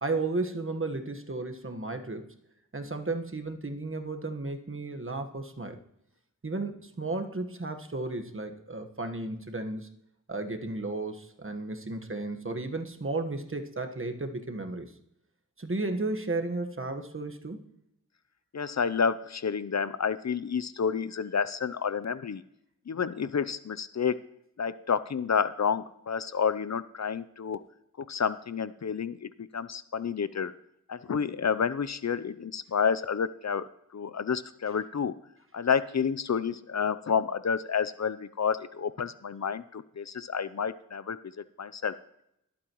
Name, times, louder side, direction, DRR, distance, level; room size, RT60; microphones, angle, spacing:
voice 1, 0.0-2.3 2.7-5.8 6.4-9.9 10.3-14.9 15.6-17.7, right 2 dB, 40° right, 6 dB, 1.4 m, -34 dB
voice 2, 18.5-22.4 22.9-24.2 24.6-27.6 28.1-30.5 30.9-33.6 33.9-35.1 35.5-41.2 41.6-41.9, left 6 dB, 55° left, 15 dB, 0.6 m, -29 dB
21.0 x 8.6 x 3.1 m, 0.79 s
cardioid pair, 45°, 33 cm